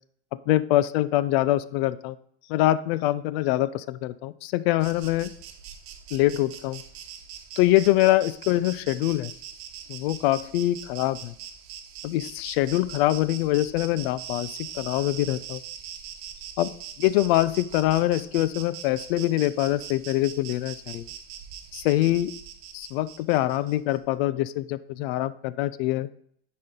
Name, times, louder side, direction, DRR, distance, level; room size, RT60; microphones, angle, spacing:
voice 1, 0.5-2.2 2.5-5.3 6.1-6.8 7.6-9.3 9.9-11.3 12.0-15.6 16.6-16.7 17.0-21.1 21.7-22.3 22.7-26.1, left 15 dB, 65° left, 17 dB, 0.5 m, -24 dB
Insect, 4.8-24.0, right 9 dB, 55° right, 1.1 m, -42 dB
10.5 x 4.3 x 3.7 m, 0.64 s
hypercardioid pair, 110°, 33 cm